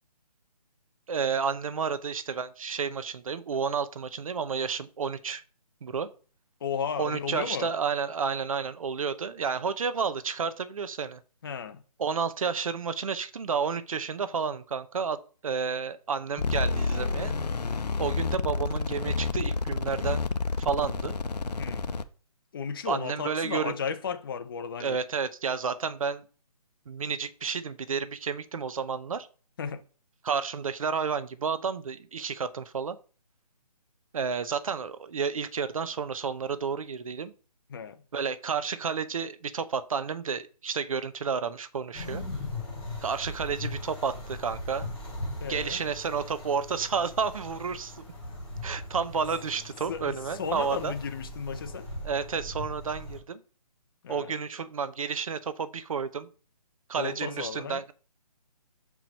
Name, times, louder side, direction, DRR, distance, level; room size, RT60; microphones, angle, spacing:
voice 1, 1.1-5.4 5.8-6.1 7.0-11.2 12.0-17.4 18.0-20.2 20.6-21.2 22.8-23.7 24.8-26.3 26.9-29.3 30.2-33.0 34.1-37.3 38.1-42.2 43.0-44.9 45.5-48.0 48.6-50.9 52.0-53.4 54.1-56.3 56.9-57.9, right 6 dB, 60° right, 0.8 m, -31 dB
voice 2, 6.6-7.7 11.4-11.8 21.6-21.9 22.5-25.0 29.6-29.8 37.7-38.0 45.4-45.8 49.9-50.1 50.4-51.9 54.0-54.3 56.9-57.8, left 6 dB, 35° left, 0.7 m, -34 dB
sound 1, 16.4-22.0, left 4 dB, 85° left, 0.7 m, -29 dB
sound 2, 41.9-53.2, left 1 dB, 5° left, 0.3 m, -39 dB
6.0 x 4.6 x 5.3 m
hypercardioid pair, 160°, 20 cm